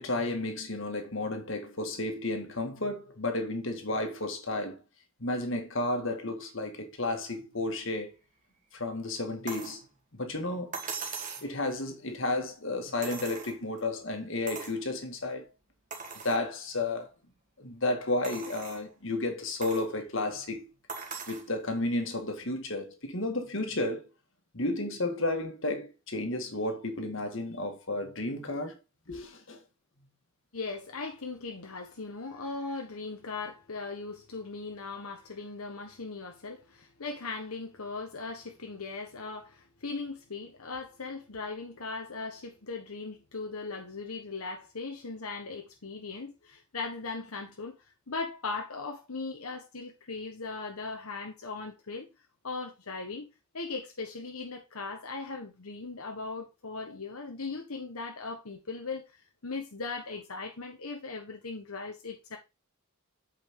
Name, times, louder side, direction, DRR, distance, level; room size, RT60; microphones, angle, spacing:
voice 1, 0.0-4.8 5.2-8.1 8.7-9.9 10.1-10.8 11.4-15.5 16.2-17.1 17.6-20.7 21.3-24.1 24.5-28.8 29.1-29.6, left 2 dB, 60° left, 1.9 m, -32 dB
sound 1, 9.5-9.8 10.7-11.5 13.0-13.8 14.5-14.8 15.3-15.4 15.9-16.4 17.0-17.1 18.2-18.9 19.6-19.9 20.9-21.5 22.7-22.8, right 5 dB, 35° right, 1.5 m, -40 dB
voice 2, 30.5-52.1 52.4-53.3 53.5-62.4, left 4 dB, 85° left, 1.3 m, -39 dB
8.6 x 5.5 x 3.8 m
head